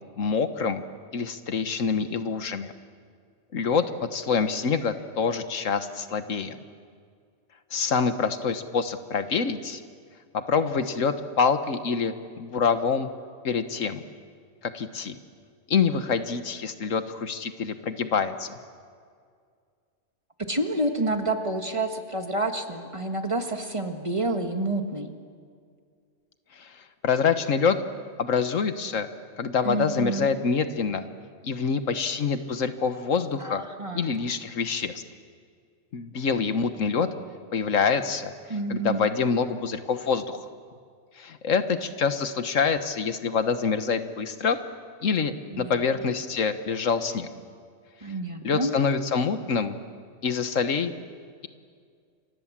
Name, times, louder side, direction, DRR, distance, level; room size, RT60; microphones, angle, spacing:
voice 1, 0.2-0.8 1.1-2.7 3.5-3.8 4.1-6.6 7.7-9.8 10.3-13.1 13.4-14.0 14.7-15.1 15.7-18.5 26.6-26.8 27.0-27.8 28.2-29.1 29.4-31.1 31.4-33.6 33.9-35.0 35.9-37.1 37.5-38.3 38.7-40.4 41.2-44.6 45.0-47.3 48.4-49.8 50.2-50.9, left 5 dB, 90° left, 10 dB, 1.6 m, -26 dB
voice 2, 20.5-25.1 29.6-30.3 33.4-34.1 38.5-39.1 45.5-45.8 48.0-48.7, right 2 dB, 25° right, 5 dB, 1.8 m, -29 dB
29.0 x 24.5 x 7.5 m, 2.1 s
omnidirectional pair, 1.3 m